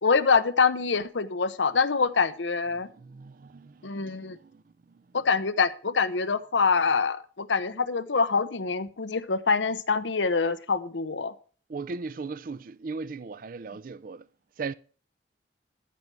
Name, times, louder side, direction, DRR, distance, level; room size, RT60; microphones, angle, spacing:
voice 1, 0.0-2.9 3.8-4.4 5.1-11.3, left 5 dB, 85° left, 0.8 m, -25 dB
voice 2, 2.7-4.6 11.7-14.2 14.6-14.7, right 4 dB, 50° right, 0.4 m, -38 dB
13.0 x 5.5 x 4.6 m
head